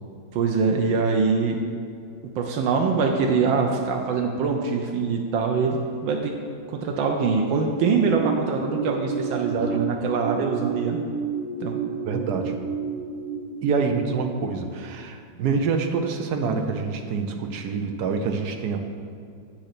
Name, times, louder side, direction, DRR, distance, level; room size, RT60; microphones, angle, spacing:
voice 1, 0.3-1.6 2.4-6.3 6.7-11.0 11.6-11.8, right 5 dB, 90° right, 2 dB, 1.5 m, -23 dB
sound 1, 8.1-14.0, right 6 dB, 30° left, 1.8 m, -30 dB
voice 2, 12.1-12.5 13.6-18.9, right 5 dB, 65° right, 5 dB, 1.2 m, -26 dB
8.2 x 6.4 x 6.0 m, 2.4 s
omnidirectional pair, 2.0 m